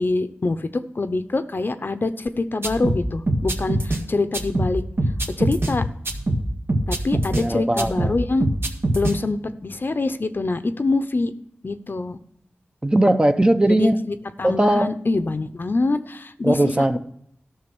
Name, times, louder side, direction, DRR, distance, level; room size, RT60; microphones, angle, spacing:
voice 1, 0.0-4.8 5.3-5.9 6.9-8.5 8.9-11.3 11.6-12.2 13.7-16.6, left 3 dB, 55° left, 10 dB, 0.8 m, -25 dB
sound 1, 2.6-4.0 4.3-5.7 6.0-7.4 7.8-9.1, right 1 dB, 65° right, 1.7 m, -23 dB
voice 2, 7.3-8.1 12.8-14.1 14.4-14.9 16.4-17.0, right 1 dB, 20° right, 8 dB, 0.8 m, -19 dB
13.0 x 6.3 x 6.2 m, 0.72 s
wide cardioid pair, 55°, 4 cm